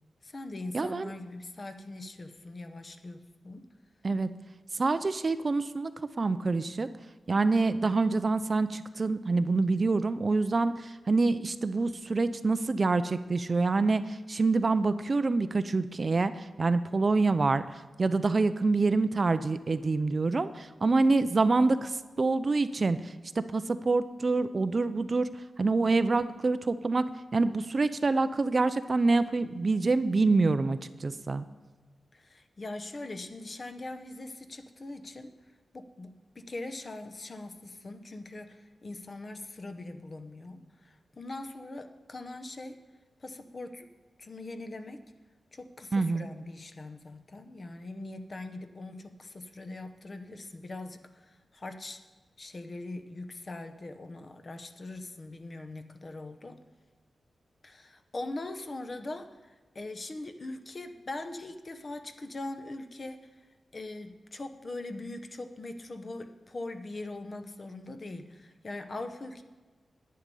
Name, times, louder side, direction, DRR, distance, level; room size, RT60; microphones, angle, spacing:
voice 1, 0.2-3.7 32.1-35.3 35.7-36.1 36.4-42.8 43.2-43.9 44.2-45.0 45.5-52.0 52.4-56.6 57.6-63.3 63.7-69.4, left 2 dB, 35° left, 8 dB, 0.8 m, -41 dB
voice 2, 0.7-1.1 4.0-4.3 4.7-5.9 6.2-6.9 7.3-25.3 25.6-27.1 27.3-31.4 45.9-46.3, right 3 dB, 35° right, 12 dB, 0.4 m, -26 dB
10.5 x 9.5 x 5.4 m, 1.3 s
wide cardioid pair, 130°, 0 cm